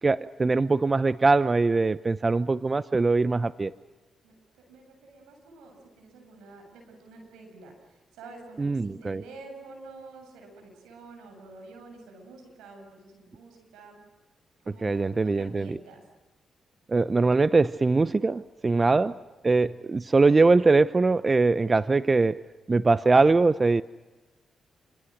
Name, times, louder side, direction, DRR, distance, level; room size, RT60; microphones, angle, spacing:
voice 1, 0.0-3.7 8.6-9.2 14.8-15.8 16.9-19.2 19.4-22.4 22.7-23.8, right 3 dB, 35° right, 15 dB, 0.7 m, -22 dB
voice 2, 4.2-14.0 14.6-16.0, right 3 dB, 85° right, 3 dB, 7.8 m, -49 dB
28.5 x 26.0 x 6.4 m, 1.2 s
hypercardioid pair, 45°, 0 cm